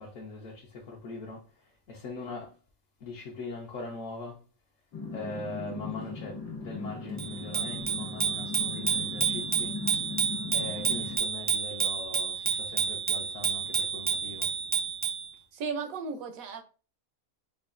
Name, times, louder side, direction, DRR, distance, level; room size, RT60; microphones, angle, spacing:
voice 1, 0.0-2.6 3.0-4.4 5.1-9.8 10.5-14.5, left 3 dB, 65° left, 1.2 m, -41 dB
sound 1, 4.9-11.2, left 3 dB, 85° left, 1.7 m, -38 dB
Bicycle bell, 7.2-15.3, right 6 dB, 20° right, 0.4 m, -30 dB
voice 2, 15.5-16.6, right 5 dB, 80° right, 1.1 m, -35 dB
5.0 x 2.6 x 2.5 m
omnidirectional pair, 1.5 m